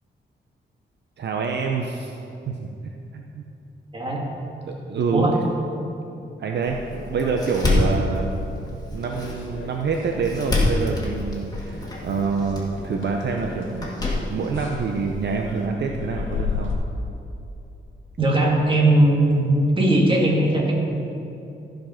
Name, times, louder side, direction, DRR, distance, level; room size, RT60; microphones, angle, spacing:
voice 1, 1.2-2.1 2.5-2.8 3.1-3.4 4.7-5.3 6.4-8.3 8.9-13.9 14.3-16.7, right 5 dB, 65° right, 2 dB, 0.7 m, -26 dB
Door, 6.7-15.7, left 2 dB, 20° left, 2.0 m, -28 dB
sound 1, 8.7-10.1 10.4-10.7 11.1-11.2 11.7-16.7, left 5 dB, 85° left, 1.2 m, -35 dB
voice 2, 18.2-20.7, right 1 dB, 25° right, -2 dB, 2.0 m, -19 dB
14.5 x 5.2 x 5.8 m, 2.8 s
wide cardioid pair, 125°, 19 cm